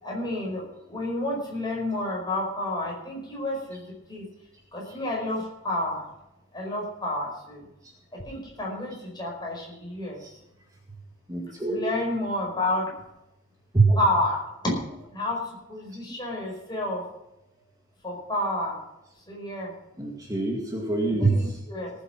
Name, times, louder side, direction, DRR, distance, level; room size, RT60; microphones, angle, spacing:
voice 1, 0.0-3.8 4.1-4.2 4.7-6.0 6.5-7.6 8.3-10.2 11.7-12.9 13.9-14.7 15.1-15.4 15.7-17.0 18.0-18.8 19.3-19.7 21.3-21.9, left 1 dB, 20° left, -2 dB, 5.0 m, -30 dB
voice 2, 11.3-11.8 13.7-14.0 20.0-21.6, right 3 dB, 15° right, -1 dB, 2.1 m, -24 dB
18.5 x 8.3 x 5.9 m, 0.93 s
head